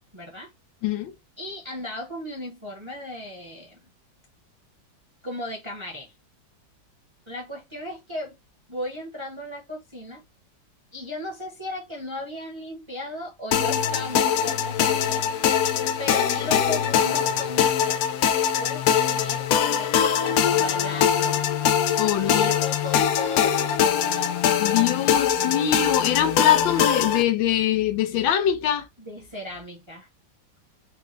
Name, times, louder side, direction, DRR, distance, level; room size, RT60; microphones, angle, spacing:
voice 1, 0.1-0.5 1.4-3.8 5.2-6.1 7.3-8.4 8.7-10.2 10.9-15.2 16.0-18.3 18.6-21.4 22.2-24.5 29.0-30.1, left 1 dB, 20° right, 0.8 m, -36 dB
sound 1, 13.5-27.2, left 8 dB, 75° left, 0.8 m, -22 dB
voice 2, 22.0-22.5 24.6-28.9, left 10 dB, 90° left, 1.4 m, -23 dB
4.7 x 2.3 x 3.1 m
omnidirectional pair, 2.1 m